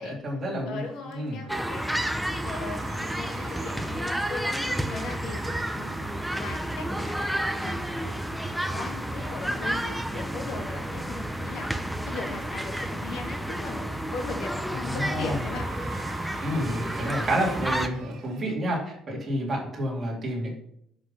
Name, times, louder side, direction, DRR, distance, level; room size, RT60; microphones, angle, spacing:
voice 1, 0.0-0.8 1.1-1.4 14.7-15.6 16.4-20.5, equal, 20° right, -4 dB, 2.7 m, -29 dB
voice 2, 0.6-1.9 2.4-7.3 7.6-8.2 8.7-11.7 12.1-13.8 14.1-15.7, left 4 dB, 65° left, 3 dB, 1.8 m, -38 dB
sound 1, 0.8-18.6, right 6 dB, 65° right, 1.9 m, -48 dB
sound 2, 1.5-17.9, right 1 dB, ahead, 0.5 m, -31 dB
7.8 x 5.7 x 5.6 m, 0.70 s
cardioid pair, 175°, 0 cm